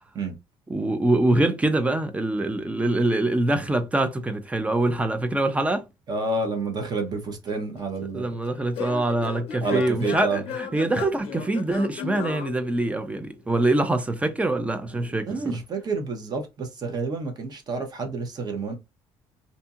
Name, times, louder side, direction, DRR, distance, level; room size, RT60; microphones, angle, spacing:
voice 1, 0.7-5.8 8.1-15.6, right 2 dB, 15° right, 0.4 m, -24 dB
voice 2, 6.1-8.3 9.6-10.4 15.0-18.7, right 3 dB, 40° right, 0.8 m, -29 dB
Singing / Plucked string instrument, 7.5-13.3, left 7 dB, 65° left, 0.5 m, -36 dB
2.7 x 2.7 x 2.4 m
cardioid pair, 140°, 10 cm